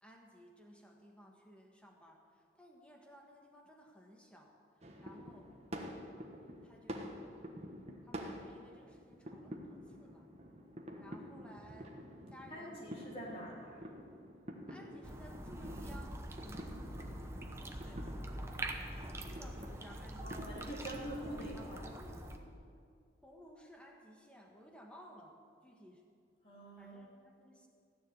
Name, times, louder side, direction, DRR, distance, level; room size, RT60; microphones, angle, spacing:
voice 1, 0.0-5.5 6.6-7.2 8.0-10.3 11.0-11.9 12.3-13.4 14.7-18.0 19.0-20.4 20.9-21.1 21.4-22.5 23.2-26.0 26.8-27.7, equal, 5° left, 1 dB, 1.4 m, -58 dB
sound 1, 4.8-21.7, equal, 35° right, 1.3 m, -49 dB
voice 2, 12.5-13.8 20.2-21.8 26.4-27.0, right 1 dB, 30° left, -4 dB, 3.2 m, -45 dB
sound 2, 15.0-22.4, right 1 dB, 15° right, 0.9 m, -44 dB
15.5 x 6.9 x 9.6 m, 2.3 s
head